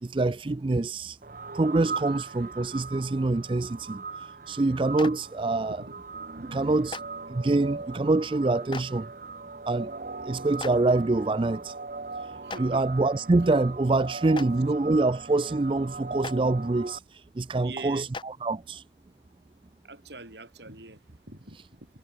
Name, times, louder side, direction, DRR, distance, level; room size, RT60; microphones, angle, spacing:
voice 1, 0.0-1.2 1.5-5.8 6.5-7.0 7.3-9.1 9.7-9.9 10.2-11.7 12.6-18.8, right 2 dB, 30° right, 0.4 m, -25 dB
sound 1, 1.2-17.0, right 4 dB, 50° right, 0.9 m, -39 dB
Clapping, 5.0-5.1 6.9-7.0 8.7-8.8 10.6-10.7 12.5-12.6 14.3-14.4 16.2-16.3 18.1-18.2, left 4 dB, 30° left, 0.8 m, -35 dB
voice 2, 6.4-6.9 12.4-12.8 17.6-18.1 19.8-21.9, right 3 dB, 75° right, 7.3 m, -44 dB
head